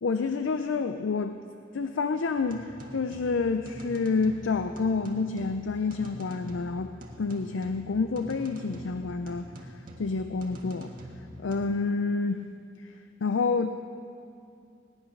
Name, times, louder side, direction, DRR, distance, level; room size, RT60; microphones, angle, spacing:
voice 1, 0.0-1.4 1.7-6.9 7.2-9.5 10.0-10.9 11.4-12.4 12.8-12.9 13.2-13.7, left 4 dB, 85° left, 8 dB, 0.5 m, -28 dB
sound 1, 2.3-11.6, right 1 dB, 45° right, 1.6 m, -45 dB
18.0 x 10.5 x 5.9 m, 2.5 s
head